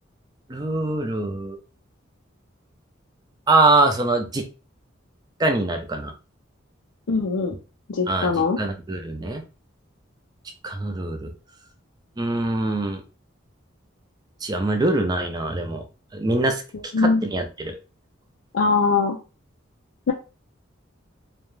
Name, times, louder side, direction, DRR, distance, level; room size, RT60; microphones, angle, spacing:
voice 1, 0.5-1.6 3.5-4.5 5.4-6.1 8.1-9.4 10.6-11.3 12.2-13.0 14.4-15.8 16.1-17.8, right 2 dB, 20° right, 5 dB, 0.4 m, -23 dB
voice 2, 7.1-7.5 7.9-8.6 16.7-17.2 18.5-19.2 20.1-20.2, left 4 dB, 80° left, 0 dB, 0.4 m, -21 dB
2.4 x 2.2 x 3.1 m, 0.32 s
head